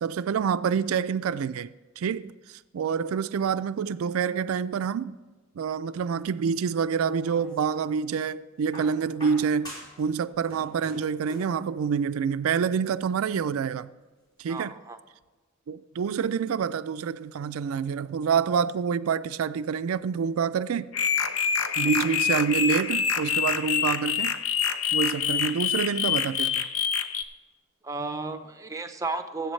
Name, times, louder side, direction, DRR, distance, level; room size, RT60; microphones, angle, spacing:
voice 1, 0.0-5.2 5.6-13.9 14.4-14.7 15.7-20.9 21.8-24.4 24.9-26.6, right 6 dB, 85° right, 0.4 m, -27 dB
sound 1, 6.9-7.9 8.7-10.1 10.3-11.6 12.7-12.8, left 1 dB, 20° left, 4.4 m, -44 dB
voice 2, 14.5-15.0 27.8-29.5, right 3 dB, 15° right, 0.7 m, -33 dB
sound 2, 20.9-27.2, left 7 dB, 75° left, 0.7 m, -26 dB
20.0 x 8.2 x 3.2 m
head